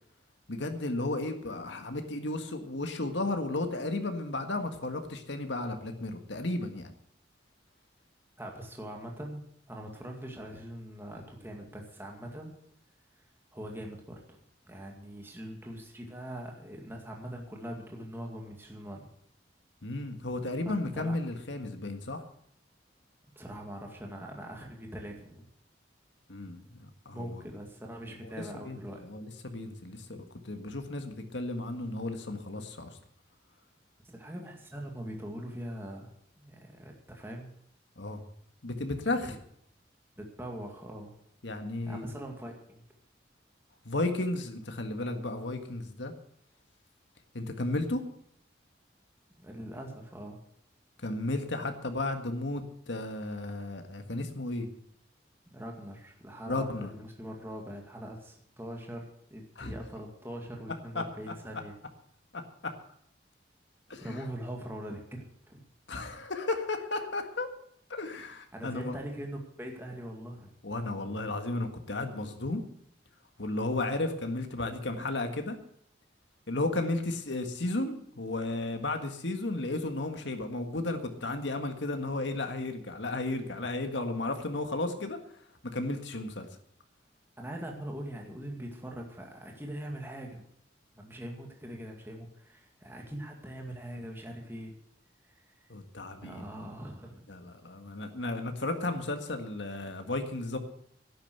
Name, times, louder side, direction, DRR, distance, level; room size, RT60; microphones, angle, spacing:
voice 1, 0.5-6.9 19.8-22.3 26.3-27.4 28.1-30.2 30.4-32.9 38.0-38.2 38.6-39.3 41.4-42.1 43.9-46.1 47.3-48.0 51.0-54.7 56.5-56.9 59.6-59.7 61.0-61.1 62.3-62.7 63.9-64.2 65.9-67.5 67.9-69.0 70.6-72.6 73.4-75.6 76.5-85.2 85.7-86.5 95.7-96.4 97.3-100.6, left 2 dB, 80° left, 6 dB, 1.7 m, -34 dB
voice 2, 8.4-12.5 13.5-14.4 14.6-19.1 20.7-21.1 23.4-25.5 27.1-29.0 34.0-36.1 36.4-37.5 40.2-41.1 41.8-42.8 49.4-50.4 55.5-61.7 64.0-65.6 68.5-70.5 87.4-90.4 91.0-94.7 95.2-95.7 96.2-97.3, right 1 dB, 10° right, 1 dB, 2.2 m, -42 dB
11.5 x 9.4 x 7.9 m, 0.70 s
head